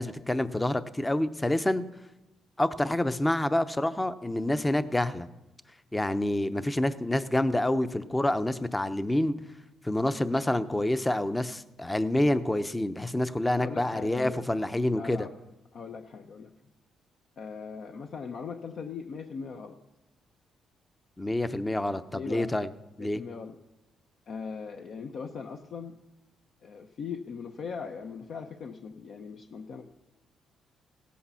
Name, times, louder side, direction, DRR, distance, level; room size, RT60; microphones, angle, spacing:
voice 1, 0.0-1.8 2.6-5.3 5.9-9.4 9.8-15.3 21.2-22.7 23.0-23.2, left 1 dB, 15° left, 12 dB, 0.7 m, -27 dB
voice 2, 13.6-15.3 15.7-16.5 17.4-19.8 22.1-22.5 23.0-23.6 24.3-26.0 26.6-29.8, left 5 dB, 60° left, 5 dB, 0.8 m, -39 dB
16.5 x 8.5 x 5.7 m, 0.95 s
cardioid pair, 90°, 0 cm